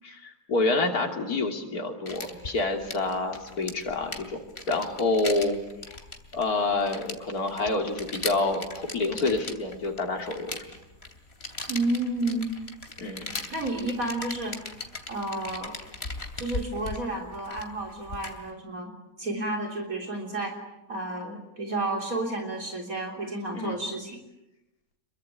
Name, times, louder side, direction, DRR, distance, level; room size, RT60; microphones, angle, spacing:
voice 1, 0.0-4.3 4.7-5.6 5.9-6.0 6.3-10.6 13.0-13.3 23.5-23.8, left 3 dB, 65° left, 3 dB, 3.4 m, -28 dB
sound 1, 2.1-18.5, left 3 dB, 40° left, 3.0 m, -39 dB
voice 2, 11.7-12.5 13.5-14.6 15.1-15.7 16.4-18.9 19.2-20.6 20.9-24.2, right 2 dB, 60° right, 2 dB, 3.9 m, -31 dB
28.0 x 23.0 x 9.3 m, 0.93 s
omnidirectional pair, 1.7 m